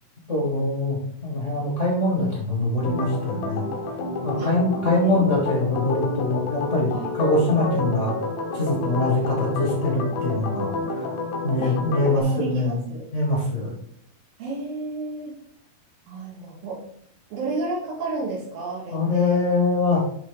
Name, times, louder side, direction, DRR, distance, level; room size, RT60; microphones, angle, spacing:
voice 1, 0.3-3.6 4.2-8.1 8.5-11.0 11.4-12.8 13.1-13.7 18.9-20.0, left 2 dB, 40° left, -3 dB, 1.1 m, -23 dB
Organ, 2.8-12.2, left 3 dB, 75° left, 2.8 m, -29 dB
voice 2, 12.1-13.1 14.4-15.3 16.1-16.8 17.3-19.4, right 3 dB, 80° right, -6 dB, 3.3 m, -31 dB
10.5 x 3.8 x 3.9 m, 0.67 s
omnidirectional pair, 4.1 m